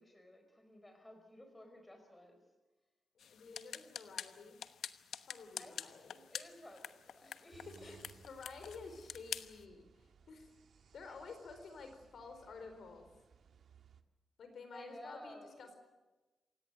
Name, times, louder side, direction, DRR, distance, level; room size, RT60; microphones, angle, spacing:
voice 1, 0.0-2.4 5.6-5.8 6.3-7.9 11.0-11.2 14.7-15.8, left 1 dB, 10° left, 4 dB, 4.6 m, -54 dB
voice 2, 3.1-4.6 5.2-6.2 7.2-7.4 7.8-8.0 8.2-10.5 10.9-13.1 14.4-15.8, left 4 dB, 60° left, 6 dB, 4.5 m, -52 dB
sound 1, 3.2-9.6, left 8 dB, 80° left, 1.0 m, -47 dB
sound 2, 7.5-14.0, right 6 dB, 60° right, 1.7 m, -62 dB
28.0 x 17.5 x 8.1 m, 1.2 s
wide cardioid pair, 160°, 0 cm